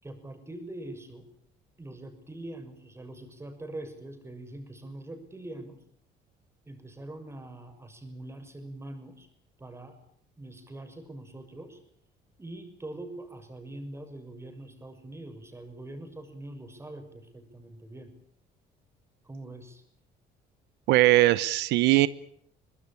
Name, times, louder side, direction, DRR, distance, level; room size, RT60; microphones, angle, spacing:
voice 1, 0.0-1.2 1.8-5.8 6.7-9.3 9.6-10.0 10.4-11.8 12.4-18.1 19.2-19.8, right 1 dB, 15° right, 8 dB, 6.4 m, -43 dB
voice 2, 20.9-22.1, right 17 dB, 85° right, 16 dB, 1.0 m, -20 dB
24.0 x 20.0 x 8.9 m, 0.66 s
cardioid pair, 110°, 17 cm